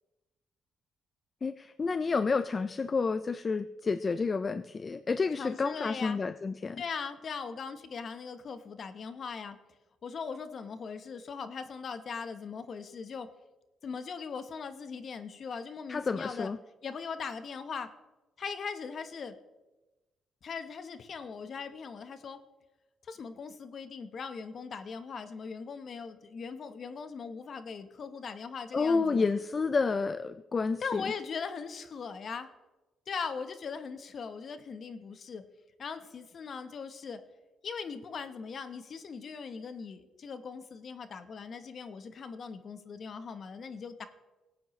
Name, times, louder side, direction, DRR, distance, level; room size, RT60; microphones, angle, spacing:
voice 1, 1.4-6.8 15.9-16.6 28.7-31.0, left 4 dB, 35° left, 13 dB, 0.4 m, -30 dB
voice 2, 5.3-6.2 6.8-9.6 10.0-13.3 13.8-16.5 16.8-17.9 18.4-19.3 20.4-22.4 23.1-29.2 30.8-32.5 33.1-35.4 35.8-37.2 37.6-44.1, left 5 dB, 50° left, 10 dB, 1.0 m, -40 dB
18.0 x 8.5 x 3.1 m, 1.1 s
cardioid pair, 90°, 0 cm